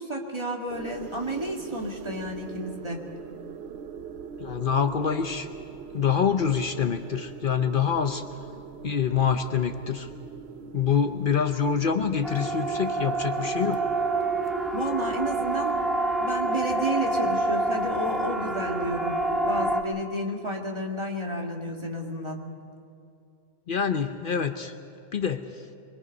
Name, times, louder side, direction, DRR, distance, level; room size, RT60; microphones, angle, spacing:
voice 1, 0.0-3.0 14.7-15.7 16.2-19.2 19.5-22.4, right 1 dB, 25° right, 0 dB, 2.0 m, -31 dB
sound 1, 0.7-19.8, right 6 dB, 90° right, 1.0 m, -43 dB
voice 2, 4.4-5.5 5.9-8.2 8.8-10.1 10.7-13.8 23.7-24.7 25.1-25.4, left 7 dB, 55° left, 8 dB, 0.9 m, -25 dB
Siren, 12.2-19.8, right 2 dB, ahead, 0.9 m, -27 dB
24.5 x 22.5 x 5.4 m, 2.5 s
omnidirectional pair, 1.1 m